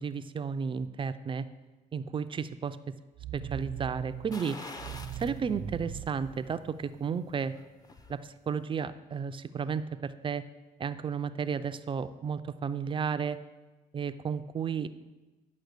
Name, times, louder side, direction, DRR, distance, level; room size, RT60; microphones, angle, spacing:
voice 1, 0.0-1.4 1.9-2.8 3.3-4.6 5.2-7.5 8.1-10.4 10.8-13.4 13.9-14.9, right 6 dB, 30° right, 11 dB, 0.4 m, -33 dB
sound 1, 3.2-7.2, right 10 dB, 65° right, 0.7 m, -41 dB
sound 2, 4.3-5.4 5.8-5.9 7.4-8.2 8.5-8.6, left 3 dB, 20° left, 0.7 m, -45 dB
9.3 x 5.6 x 6.6 m, 1.2 s
cardioid pair, 110°, 17 cm